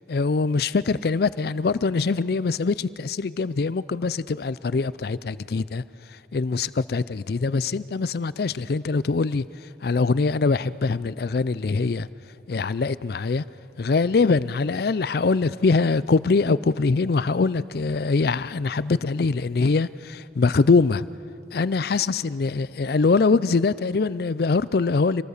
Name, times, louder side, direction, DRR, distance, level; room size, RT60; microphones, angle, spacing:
voice 1, 0.1-5.8 6.1-9.5 9.8-12.1 12.5-13.4 13.8-21.1 21.5-25.2, left 4 dB, 55° left, 0.4 m, -23 dB
26.0 x 19.0 x 6.7 m
head